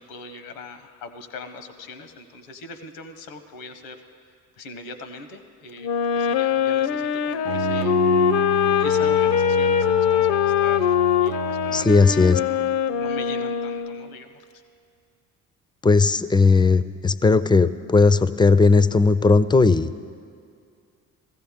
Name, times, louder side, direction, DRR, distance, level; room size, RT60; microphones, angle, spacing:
voice 1, 0.0-4.0 4.6-8.0 8.8-14.6, left 3 dB, 85° left, 9 dB, 0.9 m, -41 dB
Wind instrument woodwind instrument, 5.8-14.1, left 9 dB, 65° left, 0.6 m, -22 dB
Bowed string instrument, 7.4-12.4, right 10 dB, 75° right, 0.6 m, -30 dB
voice 2, 11.7-12.4 15.8-19.9, left 4 dB, 10° left, 15 dB, 0.4 m, -17 dB
17.0 x 15.0 x 3.6 m, 2.3 s
hypercardioid pair, 45°, 40 cm